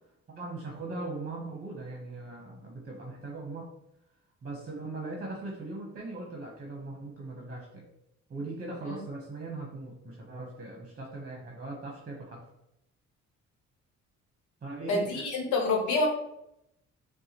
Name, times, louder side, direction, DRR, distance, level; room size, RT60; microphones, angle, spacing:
voice 1, 0.3-3.6 4.4-7.8 8.3-12.4 14.6-15.2, right 2 dB, 30° right, -1 dB, 1.0 m, -39 dB
voice 2, 14.9-16.1, left 3 dB, 80° left, 1 dB, 1.1 m, -27 dB
5.4 x 2.3 x 3.0 m, 0.81 s
cardioid pair, 90°, 30 cm